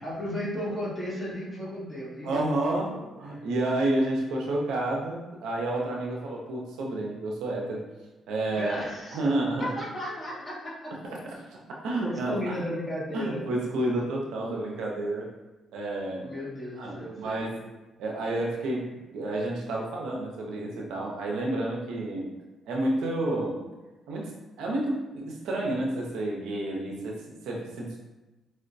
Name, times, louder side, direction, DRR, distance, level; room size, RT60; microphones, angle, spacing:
voice 1, 0.0-3.0 8.5-9.2 9.6-10.9 11.2-11.3 12.0-13.5 16.2-17.6, equal, 15° left, -7 dB, 1.4 m, -35 dB
voice 2, 2.2-7.8 8.3-8.7 9.1-9.8 11.0-11.2 11.7-12.7 13.1-15.3 15.7-16.3 16.8-17.6 18.0-18.9 19.1-22.3 22.7-23.6 24.1-24.3 24.6-28.0, right 1 dB, 85° right, -1 dB, 0.5 m, -30 dB
4.5 x 2.1 x 2.5 m, 1.1 s
cardioid pair, 90°, 0 cm